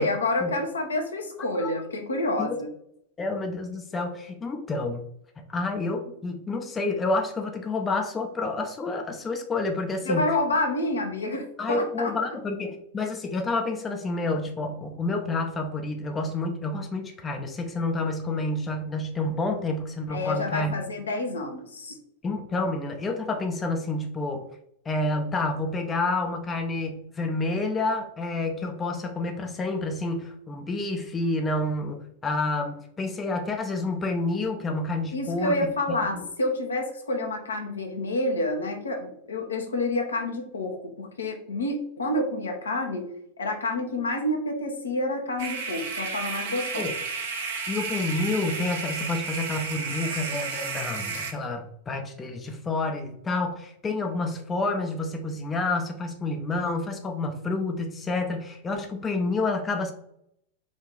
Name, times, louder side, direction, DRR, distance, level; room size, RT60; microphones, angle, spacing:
voice 1, 0.0-2.7 10.0-12.4 20.1-22.0 35.1-43.1 43.4-46.9, left 1 dB, 70° left, 3 dB, 0.9 m, -28 dB
voice 2, 3.2-5.0 5.5-10.3 11.6-20.7 22.2-24.4 24.9-35.6 36.1-36.2 46.8-46.9 47.7-59.9, left 2 dB, 20° left, 4 dB, 0.6 m, -29 dB
sound 1, 45.4-51.3, right 4 dB, 60° right, 0.9 m, -32 dB
4.8 x 2.6 x 3.8 m, 0.71 s
figure-of-eight pair, 90°, 0 cm